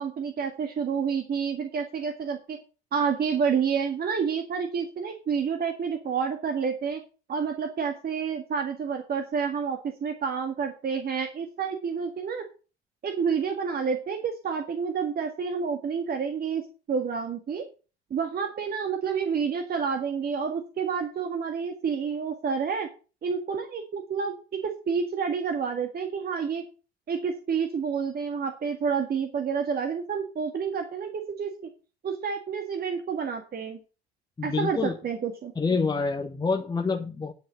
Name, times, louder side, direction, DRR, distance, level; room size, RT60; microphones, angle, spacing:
voice 1, 0.0-2.6 2.9-7.0 7.3-12.4 13.0-16.6 16.9-17.6 18.1-22.9 23.2-26.6 27.1-31.5 32.0-33.8 34.4-35.5, right 6 dB, 30° right, 4 dB, 1.8 m, -29 dB
voice 2, 34.4-35.0 35.5-37.3, left 4 dB, 15° left, 1 dB, 1.5 m, -27 dB
10.5 x 5.6 x 7.1 m, 0.34 s
figure-of-eight pair, 70°, 32 cm